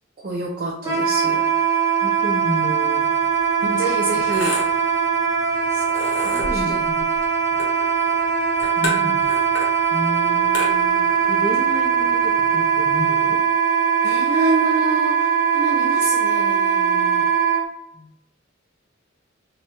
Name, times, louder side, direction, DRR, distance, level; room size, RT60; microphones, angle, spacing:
voice 1, 0.2-1.5 3.5-4.6 5.7-5.9 6.2-6.8 8.8-9.1 14.0-17.3, right 2 dB, 45° right, -2 dB, 0.4 m, -27 dB
Wind instrument woodwind instrument, 0.8-17.6, right 7 dB, 20° right, 0.8 m, -20 dB
voice 2, 2.0-3.1 4.2-4.3 6.3-7.0 7.5-7.6 8.8-9.2 9.9-13.4 17.9-18.1, left 1 dB, 15° left, -5 dB, 0.5 m, -31 dB
sound 1, 3.2-13.0, left 1 dB, 75° left, 0.8 m, -34 dB
2.9 x 2.2 x 3.0 m, 0.75 s
head